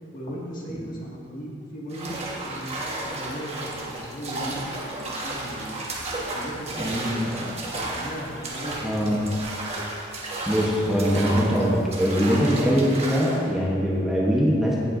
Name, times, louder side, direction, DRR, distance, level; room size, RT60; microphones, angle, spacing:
voice 1, 0.1-5.8 6.3-7.5 7.9-9.4, equal, 45° left, -4 dB, 1.9 m, -37 dB
sound 1, 1.9-13.5, right 2 dB, 30° right, 1.4 m, -33 dB
voice 2, 6.8-7.3 8.8-9.2 10.5-14.8, equal, ahead, -5 dB, 1.0 m, -22 dB
17.5 x 7.6 x 2.6 m, 2.4 s
head